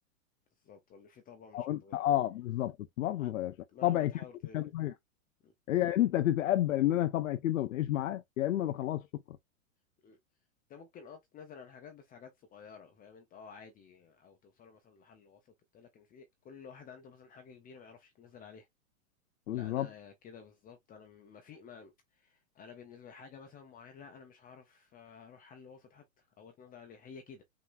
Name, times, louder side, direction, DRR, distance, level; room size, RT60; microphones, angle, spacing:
voice 1, 0.6-2.0 3.2-3.3 3.7-4.6 5.4-5.5 10.0-10.2 10.7-18.7 19.5-27.4, left 6 dB, 20° left, 0.8 m, -53 dB
voice 2, 1.5-3.5 3.8-4.1 4.5-4.9 5.7-9.4 19.5-19.9, left 13 dB, 70° left, 0.7 m, -30 dB
6.0 x 3.0 x 2.5 m
hypercardioid pair, 115°, 42 cm